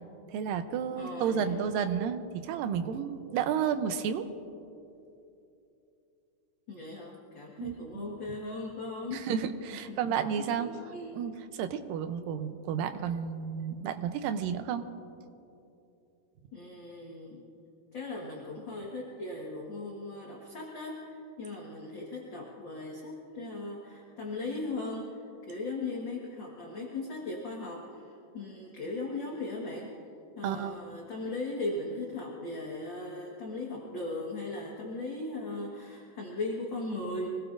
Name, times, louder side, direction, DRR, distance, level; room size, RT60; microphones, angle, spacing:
voice 1, 0.3-4.3 7.6-8.1 9.1-10.7 11.1-14.8 30.4-30.9, right 8 dB, 85° right, 8 dB, 2.5 m, -32 dB
voice 2, 0.9-1.7 6.7-9.3 10.1-11.2 16.5-17.4 17.9-25.2 25.5-28.1 28.3-29.9 30.3-37.3, left 2 dB, 45° left, -2 dB, 1.7 m, -38 dB
25.0 x 19.5 x 2.6 m, 2.7 s
omnidirectional pair, 3.9 m